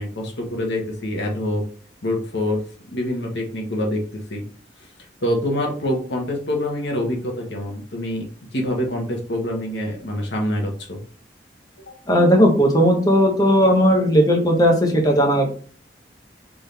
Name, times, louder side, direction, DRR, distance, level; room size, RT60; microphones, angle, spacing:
voice 1, 0.0-1.6 2.0-2.6 2.9-4.4 4.8-4.9 5.2-8.3 8.5-11.0 11.9-12.0, left 1 dB, 80° left, 1 dB, 1.3 m, -25 dB
voice 2, 12.1-15.5, equal, 20° left, 1 dB, 1.2 m, -16 dB
3.9 x 3.8 x 3.4 m, 0.43 s
head